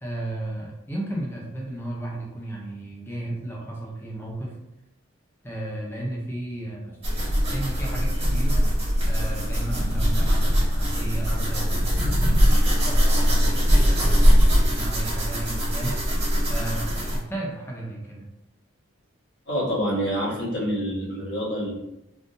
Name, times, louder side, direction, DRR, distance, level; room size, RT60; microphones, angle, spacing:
voice 1, 0.0-4.6 5.4-7.0 7.5-8.7 9.1-16.0 16.5-18.3, right 1 dB, 10° left, -2 dB, 0.5 m, -34 dB
sound 1, 7.0-17.2, equal, 30° right, 1.4 m, -21 dB
voice 2, 19.5-21.7, equal, 65° left, -6 dB, 1.3 m, -27 dB
3.7 x 2.6 x 2.6 m, 0.86 s
head